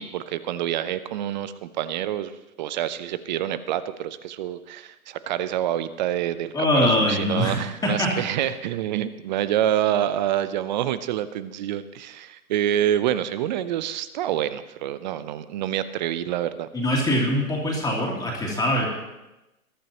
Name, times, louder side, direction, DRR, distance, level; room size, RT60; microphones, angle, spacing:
voice 1, 0.0-2.3 2.6-16.7, right 11 dB, 30° right, 14 dB, 0.6 m, -27 dB
voice 2, 6.5-7.6 7.8-8.1 16.7-18.9, left 1 dB, 10° left, -2 dB, 2.8 m, -23 dB
21.0 x 12.0 x 2.9 m, 0.99 s
hypercardioid pair, 130°, 44 cm